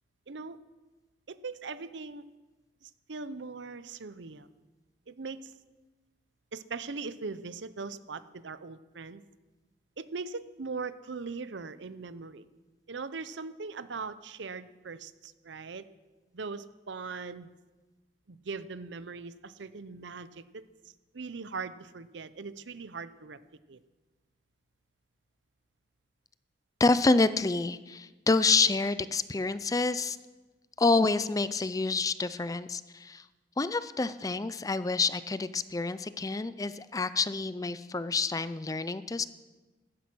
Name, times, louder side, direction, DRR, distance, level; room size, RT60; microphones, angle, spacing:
voice 1, 0.3-0.6 1.3-2.2 2.8-4.5 5.1-5.5 6.5-9.2 10.0-12.4 12.9-15.9 16.3-17.5 18.3-20.6 21.1-23.4 23.7-23.8, right 4 dB, 75° right, 14 dB, 0.7 m, -40 dB
voice 2, 26.8-30.2 30.8-33.2 33.6-39.2, left 3 dB, 20° left, 14 dB, 0.4 m, -28 dB
15.5 x 12.0 x 6.2 m, 1.2 s
head